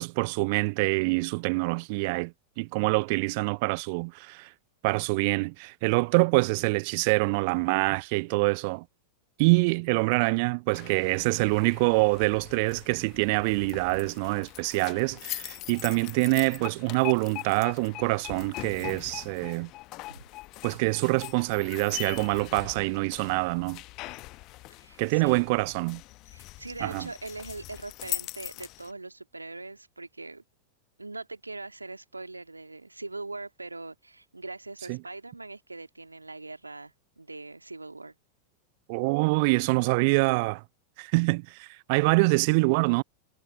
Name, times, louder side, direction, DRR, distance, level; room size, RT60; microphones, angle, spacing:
voice 1, 0.0-4.5 4.8-8.8 9.4-19.7 20.6-23.8 25.0-26.0 26.8-27.1 34.9-35.0 38.9-40.6 41.0-43.0, right 29 dB, 45° right, 0.4 m, -25 dB
sound 1, 10.7-28.9, left 20 dB, 40° left, 1.0 m, -42 dB
voice 2, 24.8-25.4 26.3-30.4 31.0-38.1, right 3 dB, 80° right, 2.2 m, -41 dB
figure-of-eight pair, 90°, 0 cm